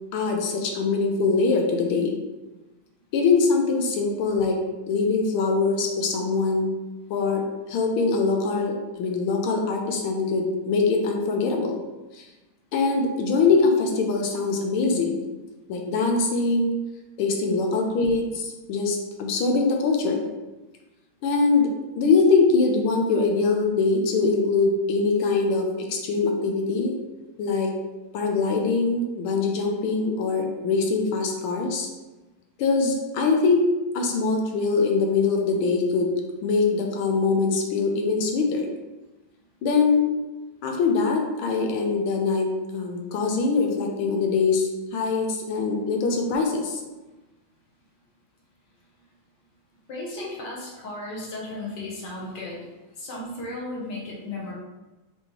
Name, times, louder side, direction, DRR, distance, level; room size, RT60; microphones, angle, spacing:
voice 1, 0.1-2.2 3.1-4.6 4.9-6.7 7.1-11.8 12.1-12.2 12.7-15.2 15.7-16.8 17.2-20.2 21.2-26.9 27.4-27.7 28.1-31.9 32.6-33.6 33.9-36.1 36.4-38.7 39.6-40.1 40.6-46.8, left 4 dB, 80° left, 2 dB, 1.5 m, -23 dB
voice 2, 49.9-52.6 53.0-54.5, left 2 dB, 60° left, -4 dB, 1.5 m, -35 dB
5.2 x 2.9 x 3.0 m, 1.1 s
omnidirectional pair, 2.3 m